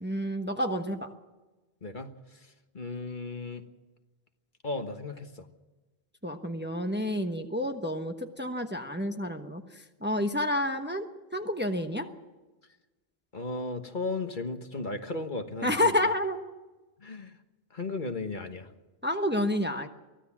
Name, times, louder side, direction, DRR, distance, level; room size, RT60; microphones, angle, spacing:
voice 1, 0.0-1.1 6.2-11.1 11.3-12.1 15.6-16.4 19.0-19.9, left 1 dB, 10° right, 5 dB, 1.1 m, -29 dB
voice 2, 2.4-3.6 4.6-5.5 13.3-15.9 17.0-17.4 17.7-18.7, left 3 dB, 50° left, 6 dB, 1.5 m, -35 dB
23.5 x 15.5 x 7.4 m, 1.2 s
omnidirectional pair, 1.1 m